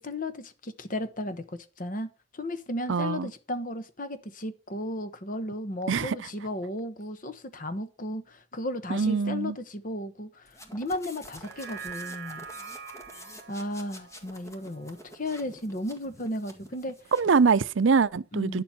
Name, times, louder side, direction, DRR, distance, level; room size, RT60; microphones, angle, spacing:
voice 1, 0.0-12.5 13.5-17.0 18.3-18.6, left 1 dB, 45° left, 1.1 m, -35 dB
voice 2, 2.9-3.3 5.9-6.2 8.9-9.5 17.1-18.6, right 5 dB, 75° right, 0.5 m, -23 dB
sound 1, 10.5-17.5, left 1 dB, 15° left, 1.8 m, -48 dB
sound 2, 11.3-15.9 16.3-16.4, right 6 dB, 55° right, 1.5 m, -44 dB
10.5 x 7.4 x 5.6 m
head